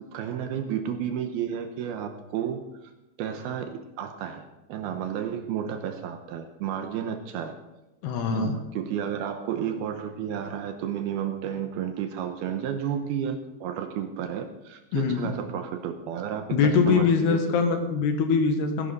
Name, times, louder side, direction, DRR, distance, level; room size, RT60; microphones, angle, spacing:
voice 1, 0.1-2.9 3.2-4.4 4.7-7.6 8.3-17.6, right 9 dB, 80° right, 6 dB, 2.3 m, -32 dB
voice 2, 8.0-8.6 14.9-15.3 16.5-18.9, left 5 dB, 70° left, 5 dB, 3.3 m, -23 dB
18.0 x 11.0 x 4.1 m, 0.96 s
omnidirectional pair, 5.4 m